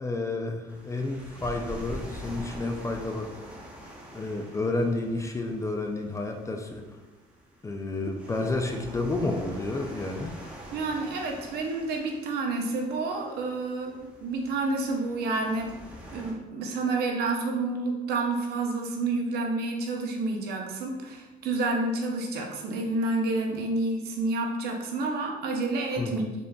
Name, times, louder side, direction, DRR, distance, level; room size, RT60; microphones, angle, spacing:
voice 1, 0.0-3.3 4.1-6.8 7.6-10.4 26.0-26.3, left 2 dB, 20° left, 4 dB, 0.3 m, -30 dB
sound 1, 0.7-16.3, right 1 dB, 5° right, 0.7 m, -45 dB
voice 2, 10.7-15.7 16.1-26.2, right 3 dB, 70° right, 2 dB, 0.7 m, -29 dB
3.7 x 3.6 x 2.2 m, 1.2 s
cardioid pair, 110°, 17 cm